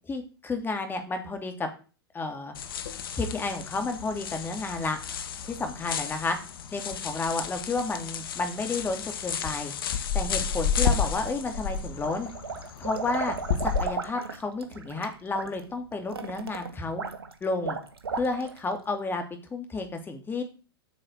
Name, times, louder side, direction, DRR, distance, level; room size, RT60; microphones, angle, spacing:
voice 1, 0.1-1.7 2.1-2.5 3.1-5.0 5.4-6.4 6.7-9.7 10.1-12.3 12.8-13.4 13.6-17.0 17.4-17.8 18.1-19.2 19.5-20.4, left 3 dB, 15° left, 6 dB, 2.8 m, -31 dB
sound 1, 2.5-13.8, left 7 dB, 65° left, 1.4 m, -32 dB
sound 2, 10.8-11.6 12.0-18.7, right 5 dB, 80° right, 1.8 m, -35 dB
9.0 x 6.4 x 8.1 m, 0.36 s
hypercardioid pair, 100°, 13 cm